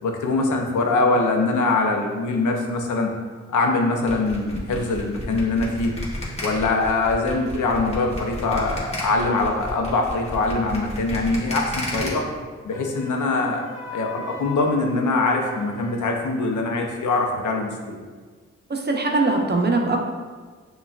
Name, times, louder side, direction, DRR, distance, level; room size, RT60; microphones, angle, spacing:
voice 1, 0.0-3.1 3.5-5.9 6.4-12.3 12.6-13.6 13.9-18.0, left 3 dB, 90° left, 2 dB, 0.6 m, -23 dB
sound 1, 4.1-12.1, left 1 dB, 20° left, 1.1 m, -32 dB
Wind instrument woodwind instrument, 12.7-16.1, left 2 dB, 45° left, 1.2 m, -39 dB
voice 2, 18.7-20.0, right 3 dB, 35° right, 2 dB, 0.6 m, -21 dB
6.7 x 2.3 x 2.3 m, 1.5 s
cardioid pair, 85°, 29 cm